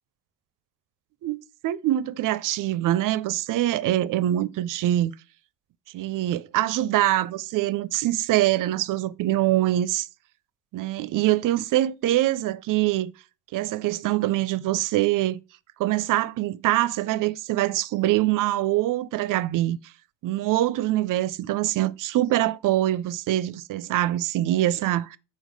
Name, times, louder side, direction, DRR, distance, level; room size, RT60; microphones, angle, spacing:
voice 1, 1.6-5.1 5.9-10.1 10.7-13.1 13.5-15.4 15.8-19.8 20.2-25.2, right 14 dB, 55° right, 0.5 m, -24 dB
4.7 x 4.3 x 5.1 m
supercardioid pair, 75°, 39 cm